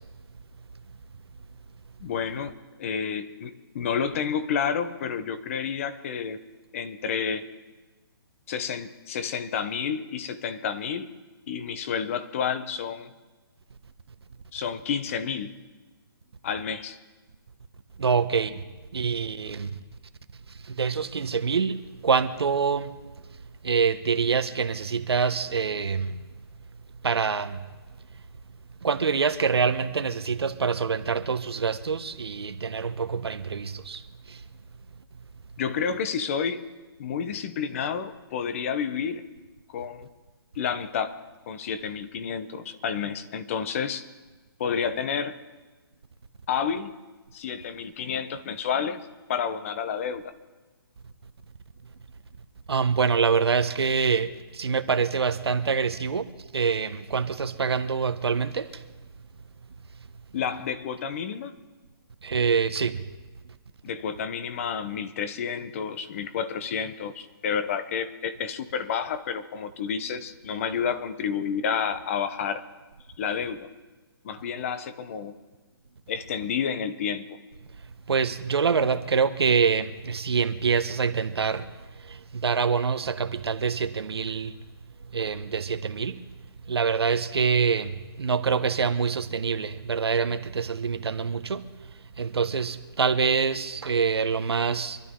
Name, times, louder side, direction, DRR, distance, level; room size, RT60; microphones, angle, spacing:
voice 1, 2.0-2.5 2.8-6.4 6.7-7.5 8.5-11.1 11.5-13.1 14.5-15.6 16.4-17.0 35.6-36.6 37.0-39.2 39.7-40.1 40.6-44.0 44.6-45.4 46.5-46.9 47.3-50.3 60.3-61.5 63.8-72.6 73.2-73.7 74.2-75.3 76.1-77.4, left 7 dB, 35° left, 1.0 m, -30 dB
voice 2, 18.0-18.6 18.9-19.7 20.7-22.9 23.6-26.1 27.0-27.6 28.8-34.0 34.3-34.4 52.7-58.7 62.2-63.0 78.1-81.6 82.1-84.5 85.1-86.2 86.7-87.9 88.2-91.7 92.2-95.0, right 5 dB, 80° right, 1.1 m, -25 dB
25.5 x 12.0 x 3.8 m
hypercardioid pair, 160°, 13 cm